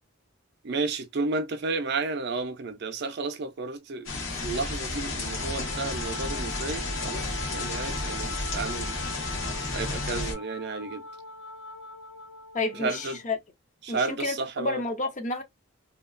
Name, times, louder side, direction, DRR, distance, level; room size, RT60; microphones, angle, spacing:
voice 1, 0.6-9.0 9.7-11.0 12.8-13.2 13.8-14.8, right 3 dB, 55° right, 0.5 m, -32 dB
Rain Loop (unfiltered), 4.1-10.3, left 2 dB, 70° left, 1.1 m, -32 dB
Wind instrument woodwind instrument, 5.2-13.2, left 1 dB, 85° left, 1.4 m, -42 dB
voice 2, 12.5-13.4 13.9-15.4, left 3 dB, 35° left, 0.6 m, -30 dB
2.8 x 2.3 x 2.4 m
head